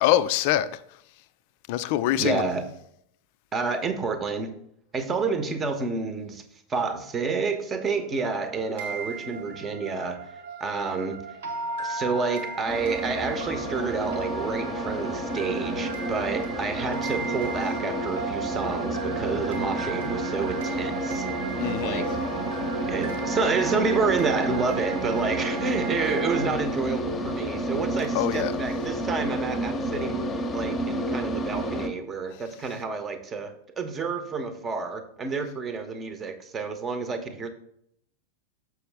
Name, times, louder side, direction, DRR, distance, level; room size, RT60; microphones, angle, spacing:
voice 1, 0.0-0.7 1.7-2.5 21.6-22.1 28.1-28.5, left 13 dB, 45° left, 0.4 m, -24 dB
voice 2, 2.2-2.6 3.5-4.5 4.9-6.4 6.7-10.3 10.6-11.2 11.8-21.3 21.8-22.1 22.9-37.5, right 4 dB, 20° right, 0.9 m, -29 dB
sound 1, 7.9-26.6, right 5 dB, 60° right, 0.9 m, -35 dB
sound 2, 12.7-31.9, equal, 20° left, 0.9 m, -31 dB
6.6 x 6.1 x 3.4 m
figure-of-eight pair, 90°, 0 cm